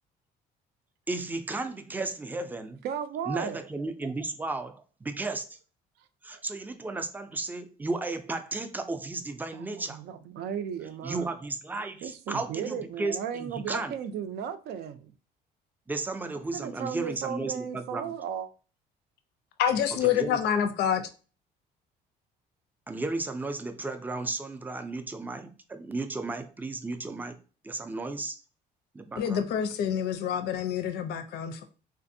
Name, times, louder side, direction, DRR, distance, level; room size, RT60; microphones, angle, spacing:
voice 1, 1.1-2.8 3.3-5.6 6.2-10.0 11.0-13.9 15.9-18.1 20.0-20.4 22.9-27.4 27.6-28.4 28.9-29.4, right 3 dB, 10° right, 0.4 m, -34 dB
voice 2, 2.8-3.6 6.3-6.4 9.5-11.3 12.0-15.1 16.5-18.5, right 8 dB, 70° right, 0.4 m, -35 dB
voice 3, 19.6-21.0 29.2-31.6, left 9 dB, 75° left, 0.5 m, -27 dB
3.4 x 2.5 x 2.6 m
cardioid pair, 110°, 17 cm